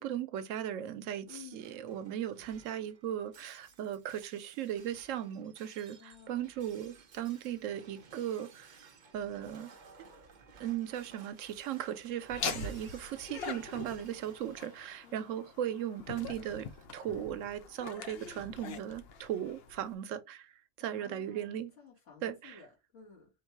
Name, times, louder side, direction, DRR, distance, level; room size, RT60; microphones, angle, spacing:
voice 1, 0.0-9.7 10.6-16.7 16.9-20.5 20.8-21.7 22.2-22.6, right 10 dB, 90° right, 1.0 m, -37 dB
voice 2, 1.3-1.7 5.9-6.5 15.0-15.3 20.8-23.3, left 8 dB, 75° left, 2.5 m, -54 dB
Shatter, 1.3-16.9, right 4 dB, 45° right, 0.8 m, -58 dB
Laughter, 12.3-19.9, left 6 dB, 60° left, 0.9 m, -43 dB
4.4 x 2.7 x 4.5 m
omnidirectional pair, 1.3 m